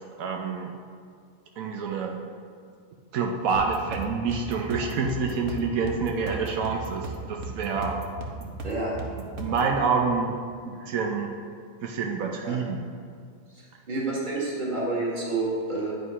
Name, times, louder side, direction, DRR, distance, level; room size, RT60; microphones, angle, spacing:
voice 1, 0.2-0.7 1.6-2.2 3.1-8.0 9.4-10.3 10.6-11.3 11.8-12.8, right 5 dB, 85° right, 1 dB, 1.1 m, -27 dB
sound 1, 3.5-9.7, right 2 dB, 65° right, 1.3 m, -37 dB
voice 2, 13.5-15.9, right 2 dB, 35° right, -4 dB, 1.8 m, -29 dB
9.7 x 5.3 x 4.9 m, 2.1 s
omnidirectional pair, 1.4 m